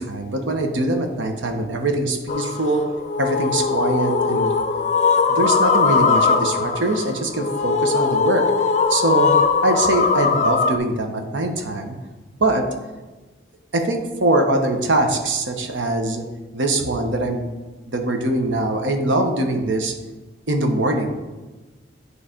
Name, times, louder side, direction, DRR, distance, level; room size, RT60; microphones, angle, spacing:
voice 1, 0.0-2.8 3.2-4.5 5.3-8.4 8.9-9.3 9.6-12.0 12.4-12.6 13.7-16.2 16.5-17.5 17.9-19.9 20.5-21.1, right 2 dB, 85° right, 4 dB, 1.0 m, -22 dB
sound 1, 2.3-10.8, left 4 dB, 40° left, 0.4 m, -20 dB
9.8 x 3.3 x 5.0 m, 1.2 s
head